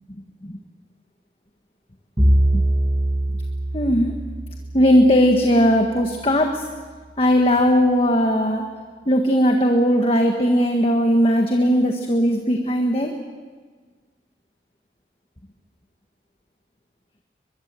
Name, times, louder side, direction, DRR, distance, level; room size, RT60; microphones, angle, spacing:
voice 1, 0.1-0.6 2.5-2.6 3.7-4.1 4.7-6.7 7.2-8.6 9.0-13.1, equal, 30° left, 3 dB, 1.7 m, -18 dB
Bowed string instrument, 2.2-6.4, right 1 dB, 20° right, 1.5 m, -23 dB
23.5 x 22.5 x 7.7 m, 1.5 s
head